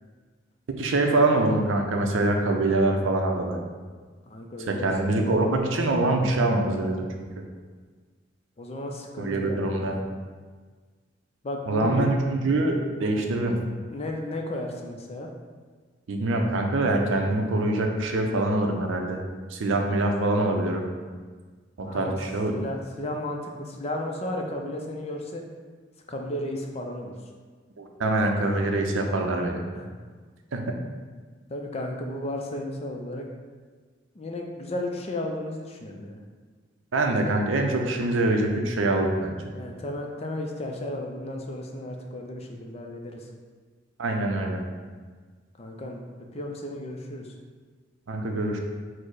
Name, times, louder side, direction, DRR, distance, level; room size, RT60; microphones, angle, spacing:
voice 1, 0.8-3.6 4.7-7.3 9.2-10.0 11.7-13.6 16.1-19.2 19.5-20.9 21.8-22.6 27.8-29.6 30.5-30.7 36.9-39.5 44.0-44.6 48.1-48.6, right 2 dB, 75° right, 2 dB, 0.5 m, -24 dB
voice 2, 4.3-5.3 8.6-9.9 11.4-12.0 13.9-15.3 21.8-22.2 22.5-25.4 26.1-27.1 29.7-29.9 31.5-33.2 34.2-36.2 39.5-43.3 45.6-46.0 46.3-47.3, left 1 dB, 30° left, 2 dB, 0.4 m, -34 dB
4.4 x 2.1 x 4.6 m, 1.5 s
head